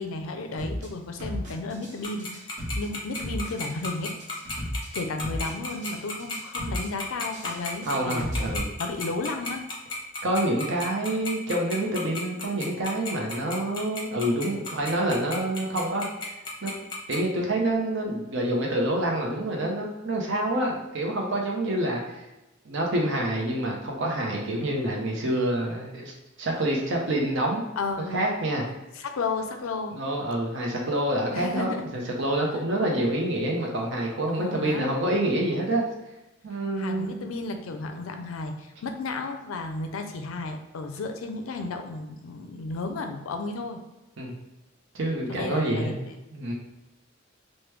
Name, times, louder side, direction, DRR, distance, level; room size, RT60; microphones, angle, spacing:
voice 1, 0.0-4.1 4.9-8.2 8.8-9.6 27.8-28.3 28.9-30.0 31.3-31.9 34.3-34.9 36.8-43.8 45.3-46.1, left 3 dB, 90° left, 6 dB, 0.4 m, -33 dB
sound 1, 0.6-0.9 1.2-1.9 2.2-2.9 3.2-3.9 4.2-4.9 5.2-5.9 6.2-6.9 7.2-8.6, equal, 40° right, 1.1 m, -34 dB
Tick-tock, 2.0-17.2, left 3 dB, 25° left, 0.6 m, -33 dB
voice 2, 7.9-8.7 10.2-16.0 16.6-16.7 17.1-22.2 22.6-26.1 26.4-27.6 28.1-28.6 29.9-35.8 36.4-37.3 44.2-44.3 44.9-46.0 46.3-46.5, right 1 dB, 65° right, 0 dB, 0.7 m, -27 dB
3.0 x 2.1 x 3.2 m, 1.0 s
head